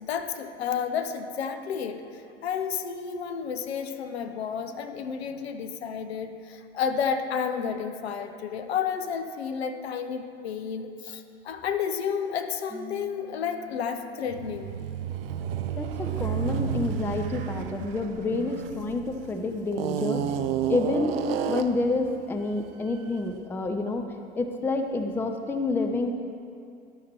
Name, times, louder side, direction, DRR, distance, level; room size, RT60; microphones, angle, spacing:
voice 1, 0.0-2.0 2.4-14.7, left 7 dB, 65° left, 7 dB, 0.7 m, -31 dB
Piano, 12.7-17.8, right 1 dB, 45° right, 1.5 m, -50 dB
sound 1, 14.3-19.1 19.7-21.9, right 9 dB, 60° right, 0.5 m, -31 dB
voice 2, 15.8-20.2 20.7-21.2 21.5-24.0 24.4-26.1, left 2 dB, 5° left, 5 dB, 0.4 m, -28 dB
sound 2, 16.5-22.8, right 4 dB, 25° right, 1.0 m, -44 dB
11.5 x 6.6 x 4.3 m, 2.5 s
figure-of-eight pair, 85°, 33 cm